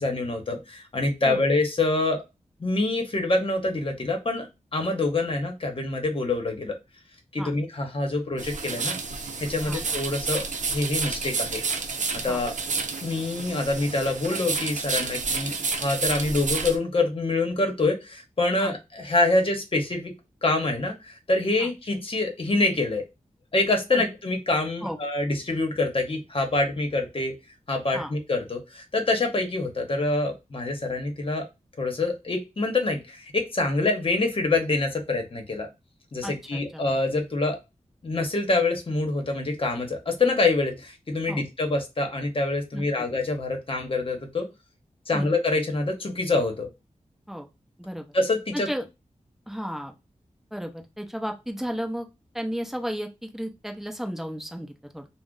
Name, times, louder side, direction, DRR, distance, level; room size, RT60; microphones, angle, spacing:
voice 1, 0.0-2.2 2.6-6.8 7.3-9.0 9.4-11.6 12.2-12.5 13.0-20.1 20.4-23.0 23.5-27.3 27.7-31.4 31.8-35.7 36.1-37.6 38.0-44.5 45.1-46.7 48.1-48.7, left 2 dB, 45° left, 3 dB, 0.9 m, -26 dB
sound 1, 8.4-16.8, right 4 dB, 80° right, 0.6 m, -30 dB
voice 2, 36.2-36.8 41.3-41.4 42.7-42.8 45.1-45.3 47.3-47.5 47.8-48.1 48.5-48.8 49.5-49.9 50.5-52.1 52.3-55.1, equal, ahead, 4 dB, 0.7 m, -33 dB
2.4 x 2.1 x 3.7 m, 0.24 s
wide cardioid pair, 80°, 13 cm